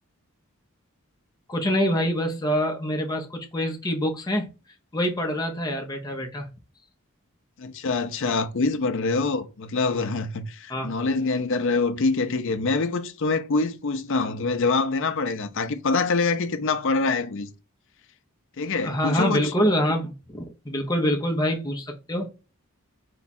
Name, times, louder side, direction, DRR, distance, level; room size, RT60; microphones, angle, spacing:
voice 1, 1.5-4.5 4.9-6.5 10.7-10.9 18.8-22.3, equal, 15° left, 0.7 m, -25 dB
voice 2, 7.6-17.5 18.6-19.5, left 3 dB, 55° left, 0.5 m, -25 dB
4.6 x 2.3 x 4.1 m
head